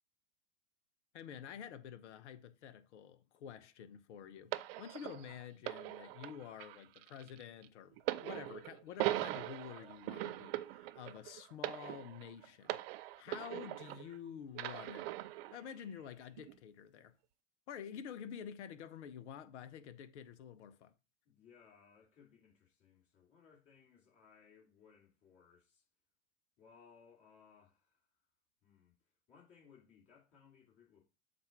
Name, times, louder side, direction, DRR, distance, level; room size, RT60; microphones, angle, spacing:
voice 1, 1.1-15.1 15.5-17.1 17.7-20.9, left 8 dB, 70° left, 0.9 m, -49 dB
sound 1, 4.5-14.2 14.5-15.6 16.4-16.5, right 16 dB, 55° right, 0.6 m, -41 dB
voice 2, 21.2-25.9 26.6-28.1 28.6-31.1, left 6 dB, 40° left, 2.9 m, -64 dB
7.7 x 2.6 x 5.8 m
hypercardioid pair, 95°, 36 cm